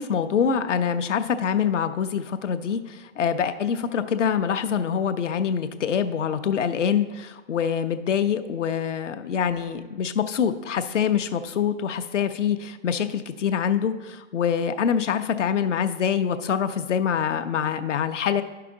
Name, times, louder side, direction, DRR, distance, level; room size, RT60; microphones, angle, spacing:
voice 1, 0.0-18.4, left 7 dB, 70° left, 10 dB, 0.8 m, -25 dB
11.0 x 5.8 x 3.7 m, 1.2 s
hypercardioid pair, 140°, 38 cm